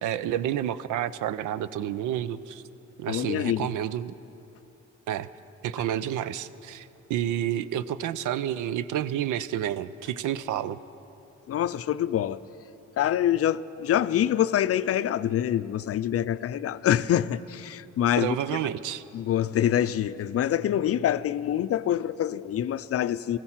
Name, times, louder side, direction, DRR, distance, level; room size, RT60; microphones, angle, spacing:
voice 1, 0.0-2.6 3.0-4.1 5.1-5.3 5.6-10.8 18.2-19.0, right 11 dB, 85° right, 0.5 m, -30 dB
voice 2, 3.1-3.7 11.5-12.4 13.0-18.4 19.1-23.4, left 11 dB, 50° left, 0.5 m, -25 dB
16.0 x 15.0 x 5.8 m
cardioid pair, 90°, 30 cm